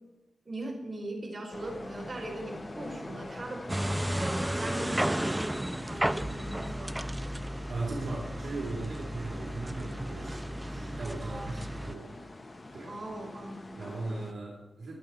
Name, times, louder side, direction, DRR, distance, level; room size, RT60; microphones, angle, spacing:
voice 1, 0.4-5.5 5.8-7.0 11.2-11.6 12.9-13.6, right 1 dB, 30° right, -1 dB, 4.6 m, -40 dB
sound 1, 1.5-14.3, left 2 dB, 25° left, 1.2 m, -45 dB
sound 2, 3.7-12.0, right 1 dB, 10° right, 0.4 m, -33 dB
voice 2, 7.7-12.1 12.7-12.9 13.8-15.0, right 2 dB, 60° right, -2 dB, 3.1 m, -38 dB
23.0 x 8.5 x 4.6 m, 1.0 s
wide cardioid pair, 115°, 0 cm